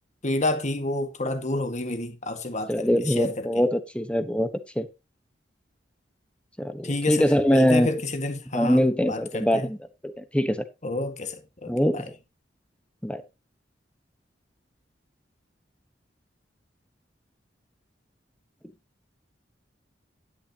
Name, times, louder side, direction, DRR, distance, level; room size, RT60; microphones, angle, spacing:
voice 1, 0.2-3.5 6.8-9.7 10.8-12.0, left 2 dB, 40° left, 1.7 m, -29 dB
voice 2, 2.7-4.5 4.8-4.9 6.6-7.9 8.5-9.8 10.0-10.6 11.7-12.0 13.0-13.2, equal, 5° left, 1.1 m, -23 dB
11.0 x 10.0 x 2.9 m
head